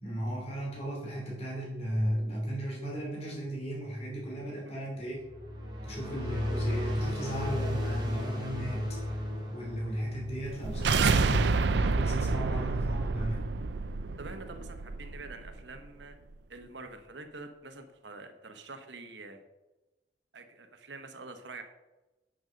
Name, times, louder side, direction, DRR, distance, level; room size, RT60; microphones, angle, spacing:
voice 1, 0.0-5.2 5.8-9.1 9.5-13.6, equal, 35° left, -3 dB, 3.0 m, -35 dB
sound 1, 5.1-11.8, left 1 dB, 25° right, 2.5 m, -35 dB
sound 2, 10.4-15.5, right 4 dB, 70° right, 0.5 m, -29 dB
voice 2, 14.2-16.2 16.5-19.4 20.3-21.6, right 3 dB, 90° right, 7 dB, 1.1 m, -46 dB
7.8 x 6.2 x 6.4 m, 1.1 s
head